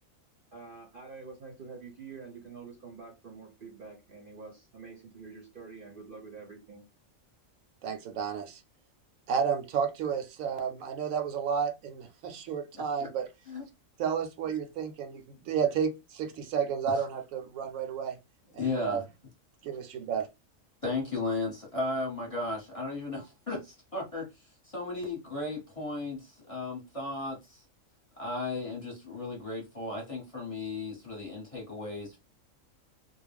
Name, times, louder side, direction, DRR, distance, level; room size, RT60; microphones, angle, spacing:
voice 1, 0.5-6.8, right 4 dB, 55° right, 0.7 m, -47 dB
voice 2, 7.8-8.6 9.3-13.3 14.0-18.2 18.5-19.0 19.6-20.3, right 7 dB, 80° right, 1.0 m, -31 dB
voice 3, 12.7-13.1 13.5-13.6 16.9-17.1 18.6-19.0 20.8-27.6 28.2-32.2, left 2 dB, 30° left, 0.9 m, -35 dB
2.3 x 2.1 x 3.4 m
omnidirectional pair, 1.4 m